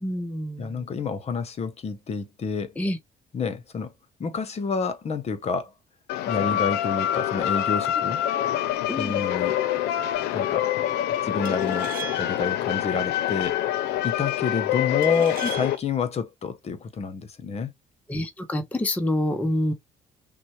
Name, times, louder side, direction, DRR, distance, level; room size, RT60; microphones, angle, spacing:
voice 1, 0.0-1.0 2.8-3.0 8.9-9.2 15.4-15.5 18.1-19.7, left 1 dB, 10° left, 0.6 m, -27 dB
voice 2, 0.6-2.7 3.3-3.9 4.2-5.7 6.3-8.2 9.0-9.5 10.3-10.7 11.2-13.6 14.0-17.7, left 5 dB, 40° left, 0.8 m, -28 dB
sound 1, 6.1-15.8, left 12 dB, 85° left, 0.6 m, -26 dB
sound 2, 9.1-9.4 11.5-12.5 15.0-15.9, right 13 dB, 60° right, 0.6 m, -40 dB
5.9 x 2.2 x 3.1 m
cardioid pair, 110°, 17 cm